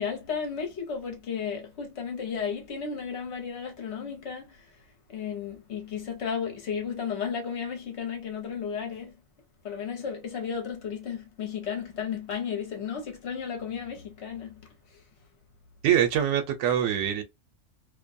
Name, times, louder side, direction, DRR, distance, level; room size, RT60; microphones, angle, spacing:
voice 1, 0.0-9.2 9.6-15.0, left 7 dB, 65° left, 1.1 m, -34 dB
voice 2, 15.8-17.2, right 9 dB, 85° right, 1.0 m, -24 dB
2.5 x 2.2 x 2.5 m
omnidirectional pair, 1.3 m